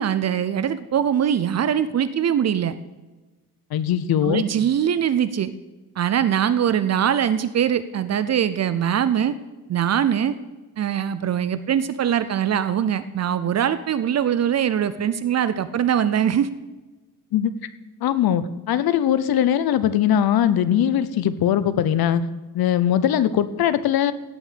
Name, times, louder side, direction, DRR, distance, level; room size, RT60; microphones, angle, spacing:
voice 1, 0.0-2.8 4.2-5.5 6.0-9.3 9.7-10.3 10.8-16.5, right 9 dB, 45° right, 13 dB, 0.5 m, -22 dB
voice 2, 3.7-4.4 17.3-17.5 18.0-22.2 22.5-24.1, left 10 dB, 85° left, 14 dB, 0.8 m, -20 dB
17.0 x 6.2 x 6.8 m, 1.2 s
wide cardioid pair, 175°, 36 cm